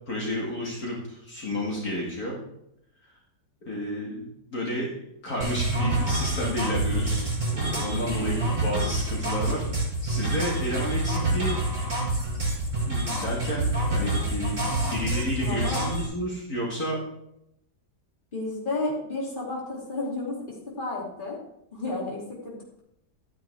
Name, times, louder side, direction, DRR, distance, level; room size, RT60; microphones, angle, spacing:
voice 1, 0.1-2.4 3.7-4.3 4.5-4.9 5.2-9.7 10.0-11.6 12.8-14.6 14.9-17.0, left 1 dB, 60° left, -4 dB, 2.6 m, -31 dB
sound 1, 5.4-16.1, right 2 dB, 50° right, 5.8 m, -27 dB
voice 2, 8.1-8.6 15.4-15.8 18.3-21.4 21.7-22.8, left 2 dB, 30° left, -4 dB, 3.1 m, -32 dB
12.5 x 9.5 x 3.6 m, 0.79 s
omnidirectional pair, 1.8 m